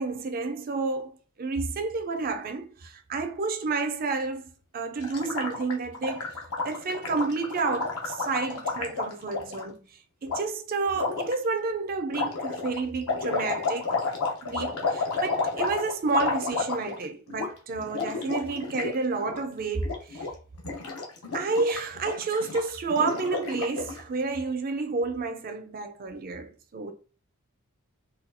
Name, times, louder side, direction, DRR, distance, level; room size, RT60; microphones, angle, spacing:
voice 1, 0.0-9.8 10.2-14.2 14.4-20.3 21.3-26.9, right 3 dB, 40° right, 0.5 m, -30 dB
Gurgling, 5.0-9.6 10.3-10.4 10.9-11.3 12.1-17.0 17.3-17.5 17.8-18.9 19.2-19.4 19.8-20.3 20.6-24.0, left 4 dB, 75° left, 0.8 m, -31 dB
4.1 x 2.3 x 2.6 m
head